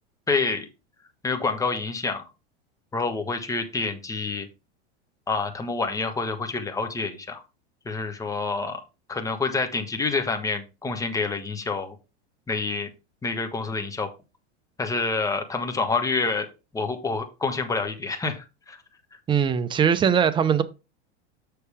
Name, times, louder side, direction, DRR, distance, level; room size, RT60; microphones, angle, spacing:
voice 1, 0.3-0.7 1.2-2.2 2.9-4.5 5.3-7.4 7.8-8.8 9.1-12.0 12.5-12.9 13.2-14.1 14.8-16.5 16.7-18.8, left 4 dB, 10° left, 1.2 m, -27 dB
voice 2, 19.3-20.6, right 7 dB, 15° right, 0.5 m, -21 dB
6.7 x 6.7 x 3.4 m
supercardioid pair, 140°, 35 cm